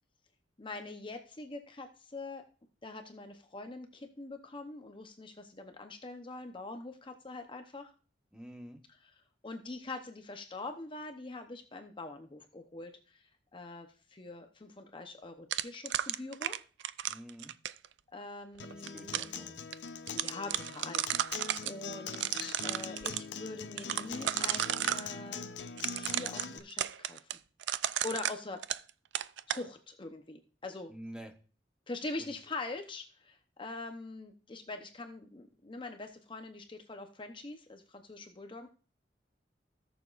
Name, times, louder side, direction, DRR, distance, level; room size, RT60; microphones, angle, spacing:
voice 1, 0.6-2.4 2.8-7.9 8.9-13.2 13.5-16.6 18.1-19.4 20.1-21.3 21.6-25.5 26.0-27.2 28.0-28.6 29.5-30.9 31.9-38.7, left 2 dB, 30° left, 6 dB, 0.8 m, -43 dB
voice 2, 8.3-8.8 17.1-17.5 18.7-19.6 30.9-31.3 32.2-32.3, equal, 5° right, 4 dB, 1.1 m, -48 dB
sound 1, 15.5-17.9 18.6-19.4 19.7-19.8 20.1-21.7 22.1-23.2 23.8-25.1 25.8-28.9 29.1-29.6, right 11 dB, 80° right, 0.4 m, -33 dB
Acoustic guitar, 18.6-26.6, left 5 dB, 85° left, 0.7 m, -43 dB
17.0 x 7.0 x 2.5 m, 0.38 s
head